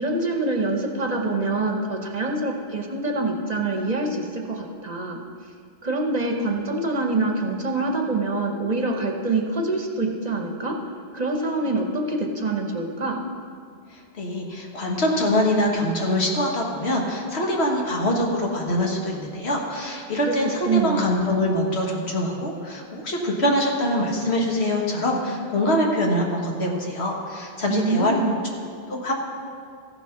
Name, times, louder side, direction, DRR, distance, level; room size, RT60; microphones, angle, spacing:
voice 1, 0.0-5.2 5.8-10.7 11.1-13.2 20.3-20.4 20.6-21.2 27.7-28.4, right 2 dB, 40° right, 2 dB, 0.9 m, -25 dB
voice 2, 13.9-28.1 28.9-29.1, left 1 dB, 80° left, 0 dB, 1.7 m, -24 dB
14.5 x 6.1 x 5.7 m, 2.3 s
omnidirectional pair, 1.1 m